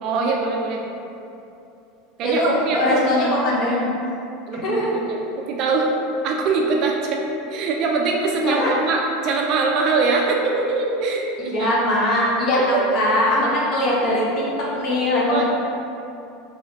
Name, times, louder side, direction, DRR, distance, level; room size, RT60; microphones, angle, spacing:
voice 1, 0.0-0.8 2.2-3.4 4.5-5.2 5.5-5.9 6.2-7.2 7.5-11.7 12.6-13.0 15.3-15.4, right 4 dB, 40° right, 0 dB, 0.3 m, -23 dB
voice 2, 2.2-3.9 4.6-4.9 8.4-8.7 11.5-12.6 12.9-14.2 14.7-15.4, left 1 dB, 35° left, -5 dB, 0.7 m, -20 dB
3.2 x 3.1 x 2.8 m, 2.7 s
supercardioid pair, 165°, 0 cm